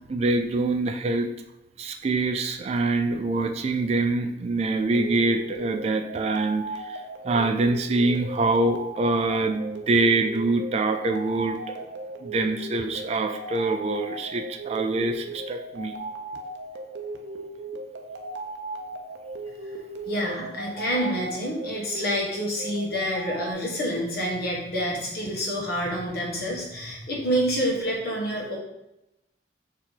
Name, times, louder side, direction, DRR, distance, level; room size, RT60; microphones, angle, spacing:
voice 1, 0.1-1.3 1.8-7.0 7.2-11.9 12.2-15.9, right 2 dB, 35° right, 6 dB, 0.3 m, -25 dB
sound 1, 4.8-23.5, right 2 dB, 90° right, 0.5 m, -37 dB
voice 2, 20.1-28.6, equal, 60° left, -3 dB, 1.3 m, -28 dB
4.3 x 2.9 x 3.9 m, 0.89 s
head